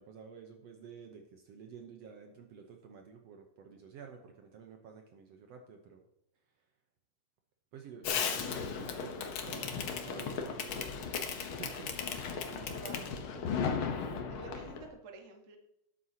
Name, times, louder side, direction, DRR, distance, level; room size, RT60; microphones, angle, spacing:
voice 1, 0.0-6.0 7.7-11.2 11.6-12.2 12.5-13.4 13.7-14.0 14.3-14.6, right 6 dB, 70° right, 4 dB, 1.7 m, -51 dB
Fireworks, 8.0-14.9, left 6 dB, 65° left, 1.3 m, -36 dB
voice 2, 12.6-13.2 14.3-15.6, right 4 dB, 45° right, 3 dB, 0.9 m, -50 dB
12.5 x 9.8 x 2.9 m, 0.82 s
omnidirectional pair, 3.7 m